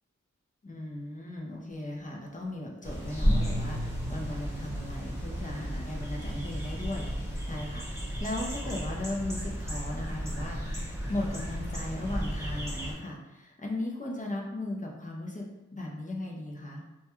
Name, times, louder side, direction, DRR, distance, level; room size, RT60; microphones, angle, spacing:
voice 1, 0.6-16.8, left 1 dB, 25° left, -2 dB, 0.4 m, -37 dB
sound 1, 2.8-12.9, equal, 10° right, 0.7 m, -33 dB
2.2 x 2.1 x 2.9 m, 1.0 s
wide cardioid pair, 75°, 30 cm